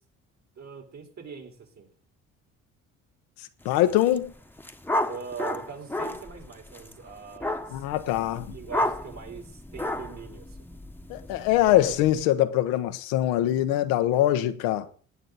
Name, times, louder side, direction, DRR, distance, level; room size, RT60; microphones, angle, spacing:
voice 1, 0.6-1.9 5.0-7.8 8.5-10.6, right 6 dB, 50° right, 4.4 m, -42 dB
voice 2, 3.6-4.3 7.7-8.5 11.1-14.9, left 13 dB, 85° left, 1.0 m, -23 dB
sound 1, 3.8-4.2 4.4-12.2, left 1 dB, 5° left, 1.2 m, -33 dB
19.5 x 9.0 x 4.1 m
supercardioid pair, 60°, 35 cm